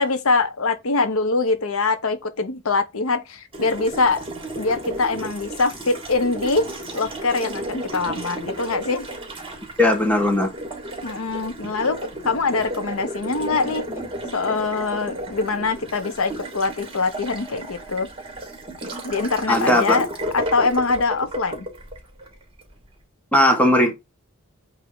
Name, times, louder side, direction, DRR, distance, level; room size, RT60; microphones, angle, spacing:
voice 1, 0.0-4.2 4.6-6.7 6.9-9.1 11.0-12.0 12.2-13.8 14.3-18.1 19.0-20.1 20.3-21.7, left 3 dB, 80° left, 0.9 m, -23 dB
Water tap faucet, 3.5-22.7, right 1 dB, 25° right, 2.5 m, -33 dB
voice 2, 9.8-10.5 19.5-20.0 23.3-24.0, left 1 dB, 5° left, 1.4 m, -17 dB
8.1 x 2.8 x 4.7 m
head